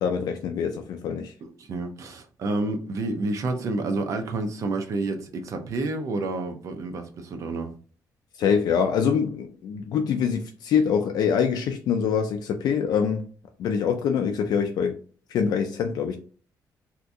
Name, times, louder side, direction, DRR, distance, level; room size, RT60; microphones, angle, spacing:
voice 1, 0.0-1.3 8.4-13.3 13.6-14.9 15.3-16.2, left 7 dB, 70° left, 0.4 m, -24 dB
voice 2, 1.4-7.7, right 2 dB, 50° right, 0.6 m, -29 dB
2.8 x 2.6 x 3.4 m
cardioid pair, 165°, 7 cm